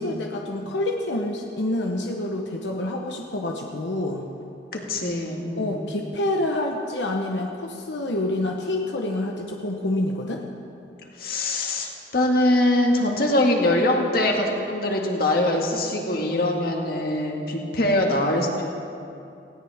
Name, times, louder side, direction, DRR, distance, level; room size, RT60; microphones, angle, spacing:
voice 1, 0.0-4.2 5.6-10.4, left 1 dB, 85° left, 1 dB, 1.1 m, -27 dB
voice 2, 4.7-5.8 11.2-18.6, left 1 dB, 55° left, 1 dB, 1.9 m, -23 dB
19.0 x 17.0 x 3.6 m, 2.6 s
head